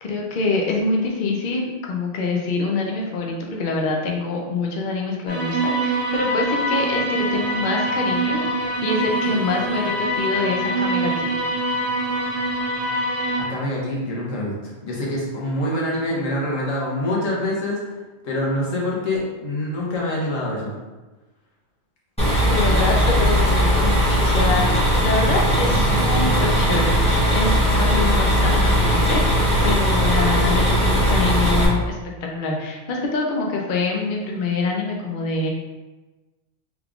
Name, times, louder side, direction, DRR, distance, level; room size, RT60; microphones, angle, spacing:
voice 1, 0.0-11.4 22.4-26.9 27.3-35.5, left 3 dB, 55° left, -1 dB, 0.6 m, -25 dB
sound 1, 5.3-13.4, right 1 dB, 30° left, 1.7 m, -24 dB
voice 2, 13.5-14.5 14.8-17.8 18.2-20.7, left 1 dB, 75° left, -4 dB, 1.3 m, -25 dB
sound 2, 22.2-31.7, equal, 5° left, 0.8 m, -18 dB
3.5 x 3.5 x 2.4 m, 1.2 s
omnidirectional pair, 1.4 m